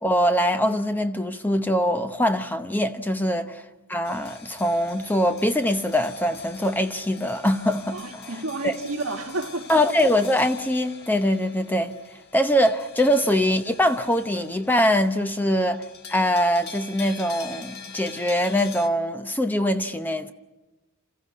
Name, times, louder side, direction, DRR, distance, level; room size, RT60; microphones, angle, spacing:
voice 1, 0.0-8.7 9.7-12.0 12.3-15.8 16.1-20.3, equal, 10° left, 0.8 m, -23 dB
sound 1, 4.0-18.9, left 5 dB, 50° left, 1.6 m, -44 dB
voice 2, 7.9-9.8, right 2 dB, 75° right, 1.6 m, -31 dB
28.5 x 14.5 x 9.4 m
head